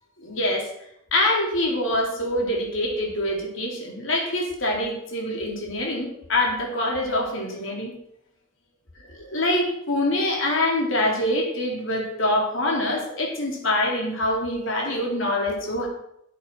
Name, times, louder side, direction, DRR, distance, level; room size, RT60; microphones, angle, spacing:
voice 1, 0.2-0.7 1.1-7.9 9.2-15.9, left 1 dB, 80° left, 0 dB, 3.7 m, -25 dB
12.5 x 8.3 x 5.9 m, 0.76 s
head